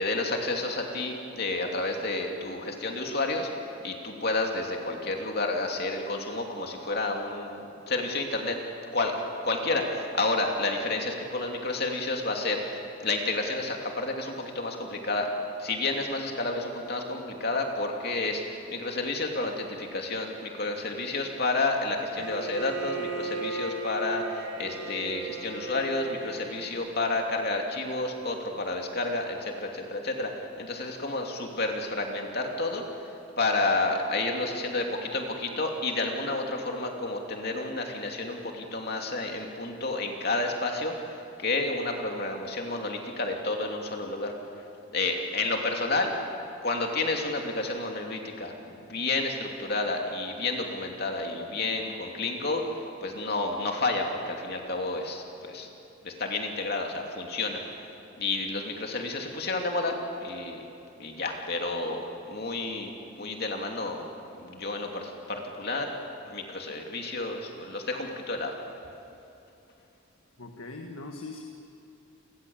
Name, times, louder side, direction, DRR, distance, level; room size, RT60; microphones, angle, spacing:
voice 1, 0.0-3.5 3.8-7.6 7.9-8.6 8.9-9.1 9.4-15.3 15.6-30.3 30.6-32.8 33.4-44.3 44.9-46.1 46.6-52.6 53.0-55.7 56.0-57.6 58.2-59.9 60.2-60.6 61.0-62.9 63.2-64.1 64.4-65.9 66.2-68.5, left 2 dB, 45° left, 2 dB, 2.9 m, -30 dB
Bowed string instrument, 22.2-26.9, right 3 dB, 80° right, 4.3 m, -36 dB
voice 2, 70.4-71.4, left 3 dB, 70° left, 3 dB, 1.6 m, -40 dB
29.5 x 20.5 x 7.3 m, 2.9 s
head